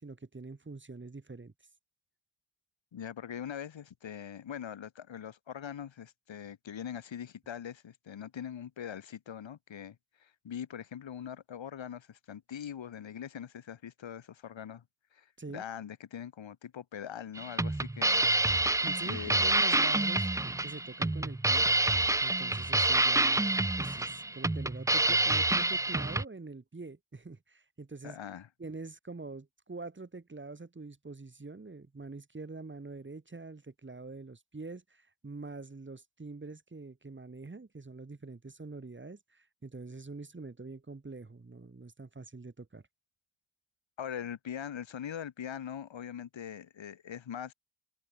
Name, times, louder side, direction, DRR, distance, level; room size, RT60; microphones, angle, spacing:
voice 1, 0.0-1.5 15.4-15.6 18.8-21.7 22.2-28.2 28.6-42.8, right 3 dB, 25° right, 1.9 m, -45 dB
voice 2, 2.9-14.8 15.1-18.3 19.0-19.5 21.6-21.7 28.0-28.5 44.0-47.5, left 9 dB, 70° left, 1.8 m, -42 dB
sound 1, 17.3-26.2, right 2 dB, 5° right, 0.4 m, -27 dB
cardioid pair, 80°, 47 cm